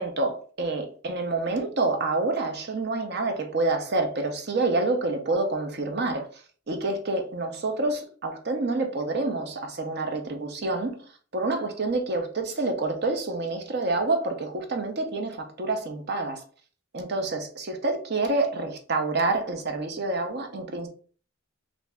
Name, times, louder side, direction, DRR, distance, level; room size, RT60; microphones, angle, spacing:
voice 1, 0.0-6.3 6.7-11.0 11.3-16.4 16.9-20.9, right 2 dB, 55° right, 0.7 m, -27 dB
3.4 x 2.6 x 3.3 m
head